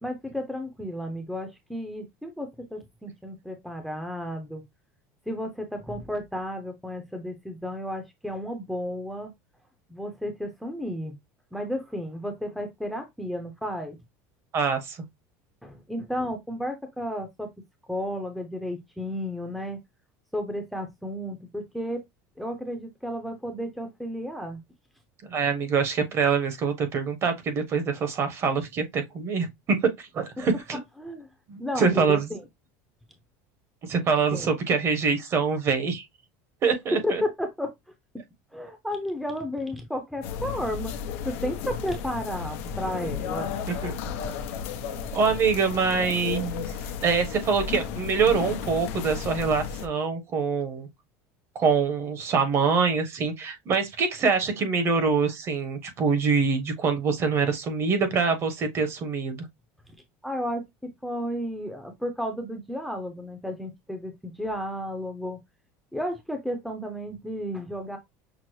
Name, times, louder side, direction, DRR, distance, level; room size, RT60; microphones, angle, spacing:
voice 1, 0.0-4.6 5.3-9.3 9.9-11.2 11.5-14.0 15.6-17.5 17.9-19.8 20.3-22.0 22.4-24.6 30.4-30.5 30.7-31.3 31.6-32.4 34.3-34.5 36.9-37.7 38.5-41.0 41.2-43.5 60.2-60.6 61.0-65.4 65.9-68.0, equal, ahead, 0.6 m, -32 dB
voice 2, 14.5-15.0 25.3-30.8 31.5-32.3 33.9-36.0 36.6-37.2 43.8-44.0 44.9-46.6 47.0-50.9 51.5-59.4, right 5 dB, 35° right, 1.0 m, -25 dB
sound 1, 40.2-49.9, left 7 dB, 85° left, 0.8 m, -34 dB
6.0 x 2.0 x 3.0 m
cardioid pair, 145°, 8 cm